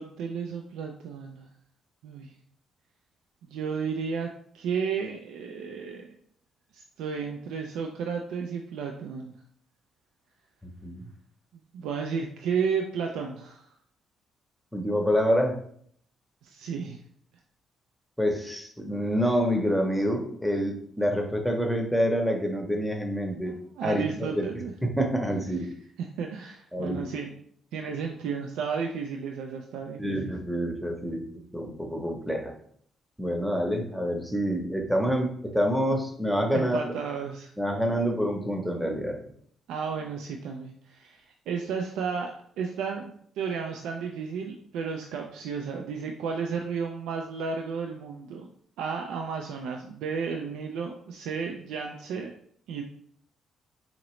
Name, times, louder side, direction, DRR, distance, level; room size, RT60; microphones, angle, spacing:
voice 1, 0.0-1.5 2.0-2.3 3.4-4.3 4.5-6.1 6.7-9.3 11.7-13.7 16.4-17.0 23.4-24.7 26.0-27.3 27.7-30.3 35.0-35.1 36.5-37.5 39.7-48.5 48.8-52.3 52.7-52.8, right 6 dB, 90° right, 2 dB, 0.3 m, -33 dB
voice 2, 14.7-15.6 18.2-23.5 23.8-25.7 26.7-27.0 30.0-31.3 31.5-32.5 33.2-36.9 37.6-39.3, equal, ahead, 2 dB, 0.7 m, -27 dB
3.8 x 2.9 x 3.0 m, 0.64 s
cardioid pair, 90°, 0 cm